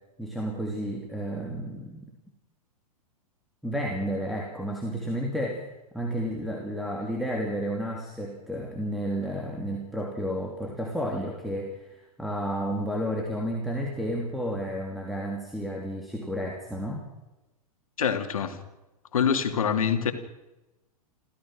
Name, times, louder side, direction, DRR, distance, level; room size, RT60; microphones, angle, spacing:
voice 1, 0.2-2.1 3.6-5.7 5.9-17.1, equal, ahead, -1 dB, 2.9 m, -31 dB
voice 2, 18.0-18.6 19.1-20.1, left 7 dB, 60° left, 7 dB, 2.7 m, -25 dB
28.5 x 15.0 x 6.4 m, 1.0 s
figure-of-eight pair, 100°, 20 cm